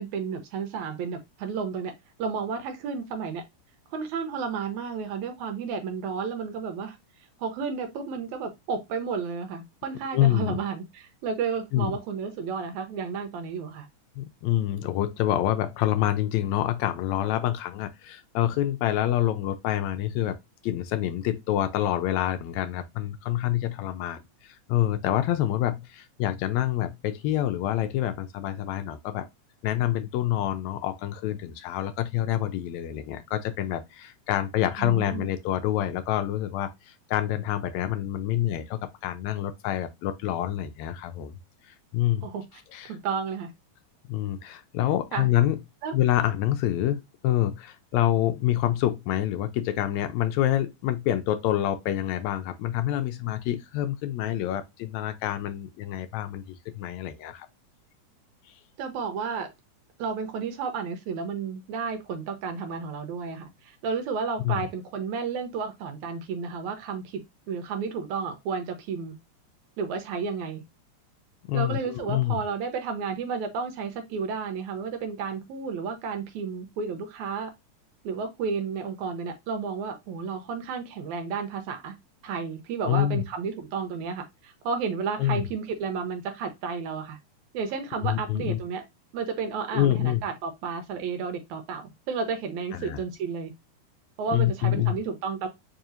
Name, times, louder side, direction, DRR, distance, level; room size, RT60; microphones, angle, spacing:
voice 1, 0.0-1.9 2.2-3.4 3.9-7.0 7.4-13.9 34.8-35.3 42.2-42.4 42.9-43.5 45.1-45.3 45.8-45.9 58.8-59.5 60.0-69.2 69.8-70.6 71.5-77.5 78.0-82.0 82.2-87.2 87.5-88.8 89.1-93.5 94.2-95.5, right 5 dB, 80° right, 2.1 m, -32 dB
voice 2, 10.1-10.6 11.7-11.9 14.2-20.4 20.6-29.3 29.6-41.3 41.7-42.3 42.7-42.9 44.1-45.6 45.9-57.5 64.4-64.7 71.5-72.4 82.8-83.2 85.2-85.4 88.0-88.6 89.7-90.2 92.7-93.0 94.3-95.0, left 13 dB, 80° left, 1.7 m, -27 dB
4.8 x 2.8 x 2.4 m
omnidirectional pair, 3.5 m